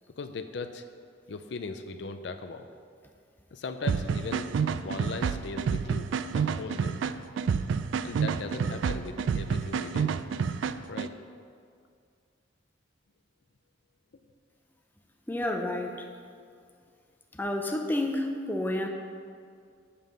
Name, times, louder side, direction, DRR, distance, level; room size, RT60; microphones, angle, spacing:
voice 1, 0.2-0.8 1.3-2.7 3.5-7.0 8.0-10.2 10.9-11.1, left 3 dB, 70° left, 8 dB, 0.5 m, -39 dB
sound 1, 3.9-11.1, right 6 dB, 90° right, 0.3 m, -29 dB
voice 2, 15.3-15.9 17.4-18.9, left 1 dB, 10° left, 3 dB, 0.6 m, -29 dB
7.2 x 5.7 x 6.5 m, 2.3 s
head